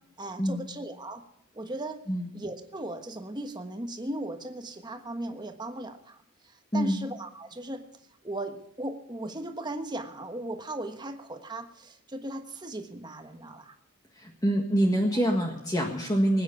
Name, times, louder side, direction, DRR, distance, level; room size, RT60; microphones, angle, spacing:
voice 1, 0.2-1.2 1.5-2.0 2.3-7.8 8.2-13.7, right 1 dB, 20° right, 6 dB, 1.3 m, -37 dB
voice 2, 14.2-16.4, equal, 15° left, 1 dB, 1.6 m, -26 dB
20.0 x 9.4 x 7.0 m, 0.78 s
head